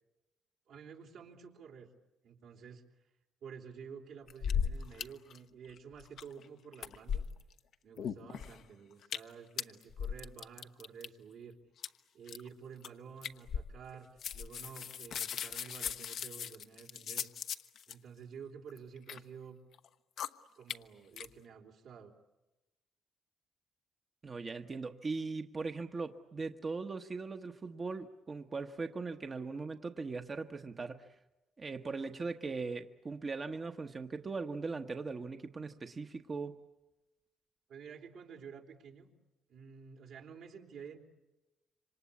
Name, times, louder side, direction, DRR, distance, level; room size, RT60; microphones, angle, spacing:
voice 1, 0.7-1.9 2.2-2.8 3.4-7.3 7.8-11.6 12.1-14.1 14.3-17.3 17.9-19.6 20.6-22.1 37.7-39.1 39.5-41.0, right 6 dB, 80° right, 1 dB, 3.6 m, -51 dB
sound 1, 4.3-5.0 5.3-5.4 5.7-6.4 6.7-7.6 8.0-8.6 9.0-9.3 9.6-11.1 11.8-11.9 12.3-12.5 12.8-12.9 13.2-13.9 14.2-17.9 18.7-19.2 19.7-19.9 20.2-20.3 20.7-20.8 21.2-21.3, left 8 dB, 70° left, 1.0 m, -37 dB
voice 2, 24.2-31.1 31.6-36.6, right 4 dB, 35° right, 6 dB, 1.0 m, -39 dB
27.5 x 25.5 x 8.5 m, 1.0 s
cardioid pair, 90°, 0 cm